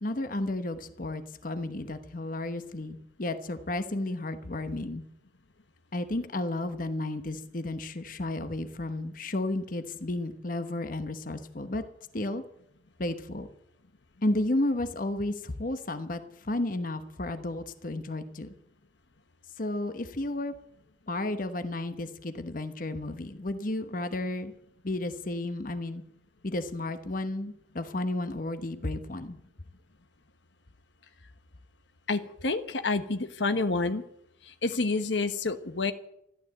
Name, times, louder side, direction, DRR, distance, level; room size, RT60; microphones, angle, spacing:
voice 1, 0.0-5.0 5.9-11.8 12.1-12.4 13.0-13.5 14.2-18.5 19.6-20.5 21.1-24.5 24.8-26.0 26.4-29.4, left 2 dB, 50° left, 9 dB, 1.1 m, -32 dB
voice 2, 32.1-34.0 34.4-35.9, left 3 dB, 75° left, 9 dB, 1.1 m, -28 dB
14.0 x 12.0 x 8.1 m, 0.76 s
head